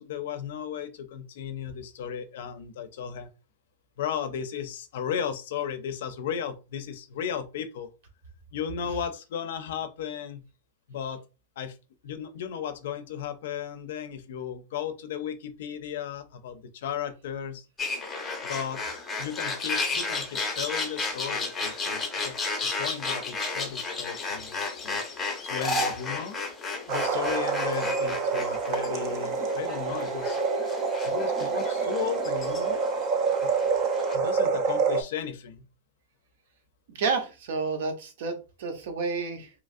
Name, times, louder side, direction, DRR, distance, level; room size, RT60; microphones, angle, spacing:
voice 1, 0.0-3.3 4.0-7.9 8.5-10.4 10.9-11.2 11.6-11.8 12.0-17.7 18.4-18.8 19.2-22.4 22.6-25.0 25.4-26.4 26.9-30.4 31.0-32.8 33.4-33.5 34.1-35.6, left 8 dB, 65° left, 0.5 m, -35 dB
sound 1, 17.8-34.2, left 3 dB, 10° left, 0.7 m, -33 dB
sound 2, 26.9-35.0, right 5 dB, 40° right, 0.4 m, -27 dB
voice 2, 36.9-39.5, right 4 dB, 65° right, 0.8 m, -30 dB
3.0 x 2.4 x 2.5 m
supercardioid pair, 155°, 0 cm